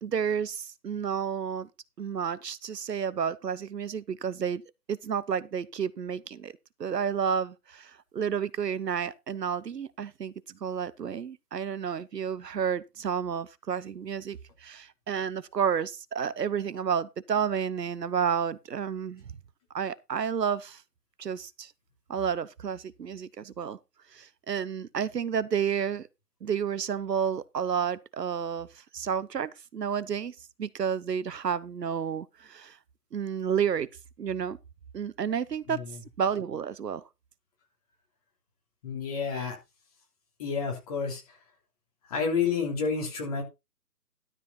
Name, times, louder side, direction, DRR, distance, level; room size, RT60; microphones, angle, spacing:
voice 1, 0.0-1.7 2.0-4.6 4.9-6.5 6.8-10.3 10.6-19.2 19.7-20.8 21.2-21.7 22.1-23.8 24.1-26.1 26.4-28.7 28.9-32.8 33.1-33.9 34.2-34.6 34.9-35.8 36.2-37.0, right 7 dB, 75° right, 1.0 m, -31 dB
voice 2, 35.7-36.0 38.8-39.5 40.4-41.2 42.1-43.4, left 5 dB, 20° left, 3.2 m, -30 dB
13.0 x 5.0 x 5.6 m
hypercardioid pair, 165°, 49 cm